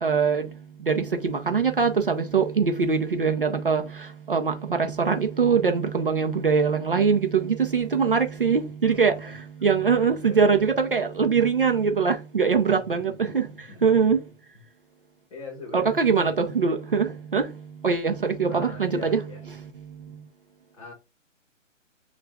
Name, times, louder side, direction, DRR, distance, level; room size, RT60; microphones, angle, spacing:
voice 1, 0.0-0.5 0.9-13.5 13.8-14.2 15.7-17.5 17.8-19.2, right 5 dB, 45° right, 0.6 m, -23 dB
voice 2, 8.9-9.3 9.6-10.7 12.6-14.2 15.3-16.3 18.5-19.5 20.7-20.9, left 3 dB, 25° left, 1.3 m, -43 dB
6.5 x 2.5 x 2.2 m
hypercardioid pair, 180°, 39 cm